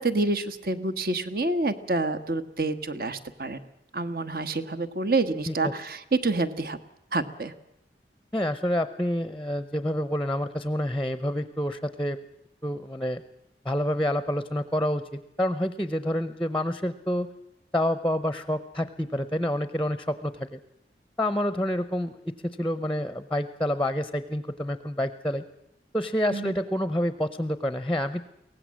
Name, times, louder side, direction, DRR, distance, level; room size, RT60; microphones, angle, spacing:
voice 1, 0.0-3.6 3.9-6.8 7.1-7.5 26.3-26.5, right 2 dB, 55° right, 11 dB, 1.3 m, -27 dB
voice 2, 8.3-12.2 12.6-13.2 13.6-17.3 17.7-20.6 21.2-25.4 25.9-28.2, equal, 10° left, 13 dB, 0.7 m, -28 dB
23.5 x 17.5 x 7.5 m, 0.84 s
head